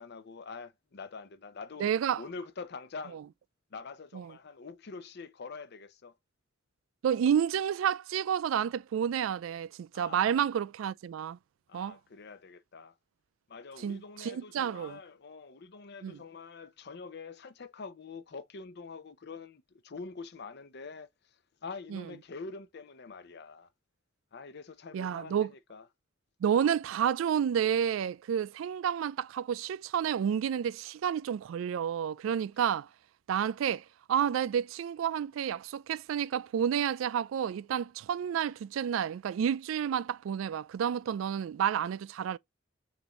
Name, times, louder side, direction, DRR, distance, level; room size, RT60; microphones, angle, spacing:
voice 1, 0.0-3.2 3.7-6.2 9.9-10.3 11.7-13.0 13.5-23.7 24.3-25.9, left 4 dB, 55° left, 0.6 m, -45 dB
voice 2, 1.8-2.2 4.1-4.3 7.0-11.4 11.7-12.0 13.8-15.0 16.0-16.2 21.9-22.0 24.9-25.5 26.4-32.9 33.3-42.4, right 8 dB, 85° right, 0.3 m, -30 dB
6.9 x 2.6 x 2.9 m
head